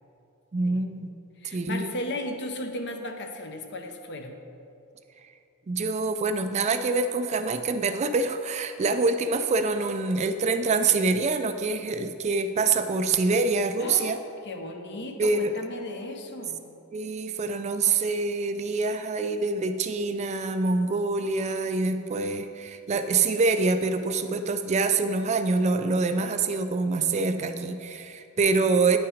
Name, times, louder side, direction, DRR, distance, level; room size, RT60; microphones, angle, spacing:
voice 1, 0.5-1.1 1.4-1.9 5.7-14.2 15.2-15.5 16.9-29.0, right 3 dB, 30° right, 9 dB, 0.3 m, -25 dB
voice 2, 1.4-4.4 13.8-16.6, left 1 dB, 50° left, 5 dB, 0.8 m, -36 dB
9.6 x 5.7 x 5.0 m, 2.6 s
head